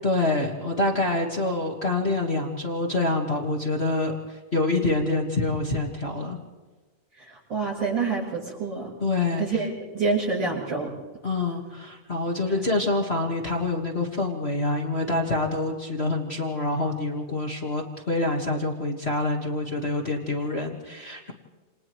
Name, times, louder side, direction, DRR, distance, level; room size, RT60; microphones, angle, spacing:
voice 1, 0.0-6.4 9.0-9.6 11.2-21.3, left 2 dB, 45° left, 0 dB, 0.8 m, -26 dB
voice 2, 7.2-8.9 9.4-10.9, right 4 dB, 40° right, -7 dB, 7.7 m, -27 dB
29.5 x 28.5 x 3.1 m, 1.3 s
omnidirectional pair, 3.9 m